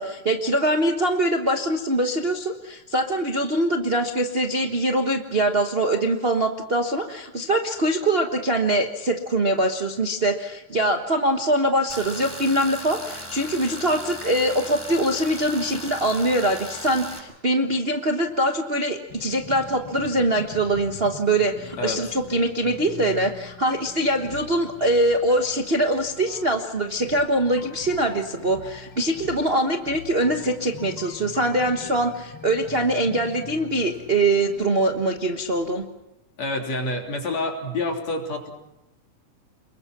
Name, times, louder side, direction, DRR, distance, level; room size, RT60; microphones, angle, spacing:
voice 1, 0.0-35.9, right 1 dB, 85° right, 3 dB, 0.5 m, -23 dB
Tools, 11.9-17.2, equal, 5° left, 5.4 m, -37 dB
sound 1, 19.1-35.9, left 7 dB, 45° left, 1.8 m, -43 dB
voice 2, 36.4-38.5, left 2 dB, 60° left, 2 dB, 4.5 m, -28 dB
29.5 x 22.0 x 6.1 m, 0.89 s
omnidirectional pair, 3.4 m